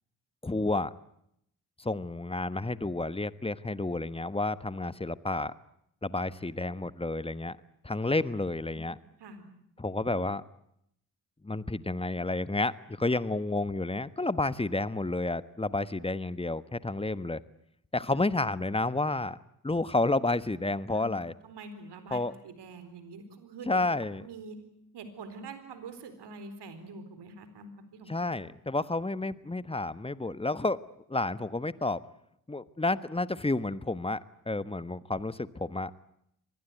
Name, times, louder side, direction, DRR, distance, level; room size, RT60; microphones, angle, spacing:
voice 1, 0.4-0.9 1.8-5.5 6.0-7.6 7.8-9.0 9.8-10.4 11.4-17.4 17.9-19.4 19.6-21.3 22.1-22.3 23.7-24.2 28.1-30.8 31.1-32.0 32.5-34.2 34.5-36.1, left 2 dB, 15° left, 16 dB, 1.3 m, -30 dB
voice 2, 21.4-23.8 24.1-24.6 24.9-28.1, right 3 dB, 65° right, 10 dB, 4.3 m, -45 dB
24.5 x 20.0 x 9.3 m, 0.76 s
hypercardioid pair, 40°, 43 cm